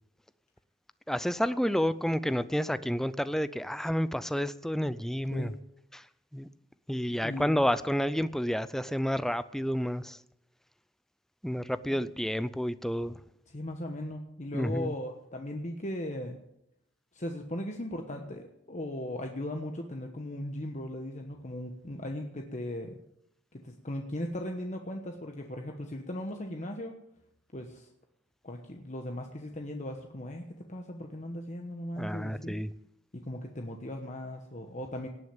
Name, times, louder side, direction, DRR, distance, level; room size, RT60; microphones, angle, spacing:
voice 1, 1.1-5.5 5.9-6.1 6.3-6.5 6.9-10.2 11.4-13.2 14.5-14.9 32.0-32.7, equal, ahead, 14 dB, 0.5 m, -30 dB
voice 2, 7.1-7.5 13.5-16.4 17.1-23.0 23.5-27.0 27.5-27.9 28.4-32.5 33.1-35.1, left 1 dB, 40° left, 3 dB, 1.2 m, -38 dB
18.0 x 6.5 x 8.8 m, 0.81 s
head